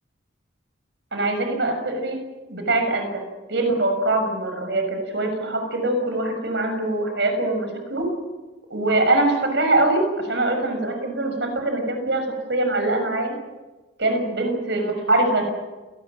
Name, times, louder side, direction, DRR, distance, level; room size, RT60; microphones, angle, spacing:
voice 1, 1.1-2.2 2.5-3.2 3.5-8.1 8.7-12.2 12.5-13.3 14.0-15.5, right 2 dB, 65° right, 6 dB, 6.6 m, -23 dB
28.5 x 19.5 x 7.6 m, 1.2 s
head